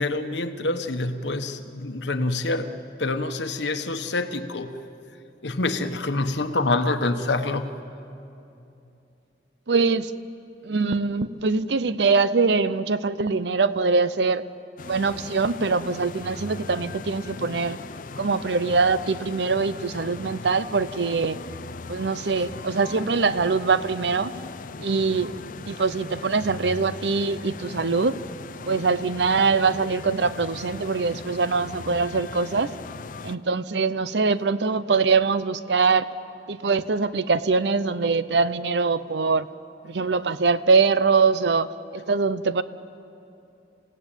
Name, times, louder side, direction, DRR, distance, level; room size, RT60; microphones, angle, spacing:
voice 1, 0.0-4.7 5.4-7.8, left 2 dB, 80° left, 8 dB, 1.2 m, -26 dB
voice 2, 9.7-10.1 10.6-14.4 14.9-17.8 18.2-21.4 21.9-24.3 24.8-25.3 25.7-28.2 28.7-32.7 33.2-36.1 36.5-39.5 39.8-42.6, right 4 dB, 70° right, 15 dB, 0.7 m, -23 dB
sound 1, 14.8-33.4, left 4 dB, 50° left, 0.5 m, -39 dB
28.5 x 17.0 x 9.0 m, 2.8 s
head